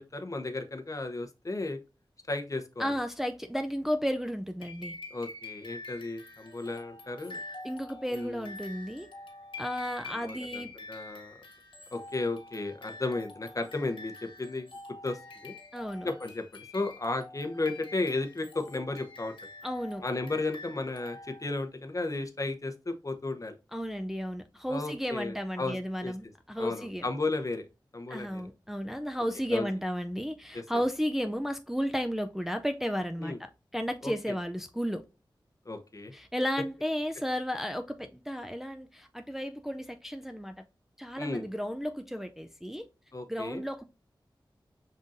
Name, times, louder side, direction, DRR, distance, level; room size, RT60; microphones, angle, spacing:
voice 1, 0.0-1.8 2.3-2.9 5.1-7.4 8.1-8.5 10.1-11.3 11.9-14.1 14.4-14.7 15.0-15.5 16.0-19.3 20.0-23.5 24.7-25.8 26.0-26.1 26.6-27.7 27.9-28.4 29.5-29.7 30.5-30.6 33.2-33.4 34.0-34.4 35.7-36.1 41.2-41.4 43.1-43.6, left 2 dB, 40° left, 0.8 m, -34 dB
voice 2, 2.8-4.9 7.6-9.1 9.6-10.7 15.7-16.1 19.6-20.0 23.7-27.1 28.1-35.0 36.1-40.6 41.0-42.8 43.3-43.8, equal, 5° right, 0.4 m, -33 dB
sound 1, 4.6-21.6, left 2 dB, 85° left, 1.2 m, -46 dB
5.4 x 3.7 x 2.6 m
wide cardioid pair, 65°, 9 cm